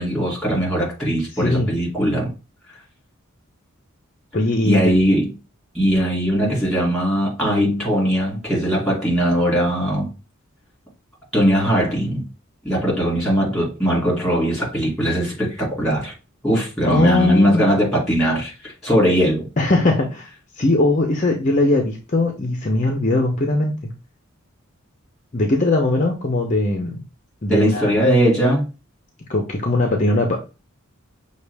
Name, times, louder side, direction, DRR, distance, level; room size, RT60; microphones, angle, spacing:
voice 1, 0.0-2.3 4.6-5.3 5.7-10.1 11.3-12.3 12.6-16.1 16.4-19.5 27.5-28.7, equal, ahead, 2.6 m, -20 dB
voice 2, 1.4-1.7 4.3-4.8 16.9-17.6 19.6-20.3 20.6-23.7 25.3-27.0 27.4-27.9 29.3-30.4, left 2 dB, 35° left, 0.7 m, -19 dB
6.0 x 2.4 x 3.4 m
head